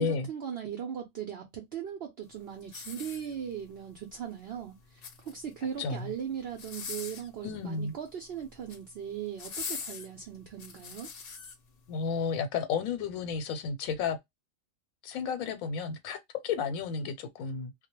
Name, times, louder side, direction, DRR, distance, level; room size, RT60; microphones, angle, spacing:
voice 1, 0.0-4.8 5.2-11.1, right 8 dB, 60° right, 0.7 m, -38 dB
sound 1, 2.6-3.7 4.8-5.6 6.5-7.3 8.4-8.8 9.4-11.5 12.1-12.3, left 6 dB, 55° left, 0.7 m, -41 dB
voice 2, 5.8-6.1 7.4-7.9 11.9-14.2 15.0-17.7, left 5 dB, 90° left, 1.0 m, -32 dB
2.2 x 2.1 x 2.8 m
omnidirectional pair, 1.4 m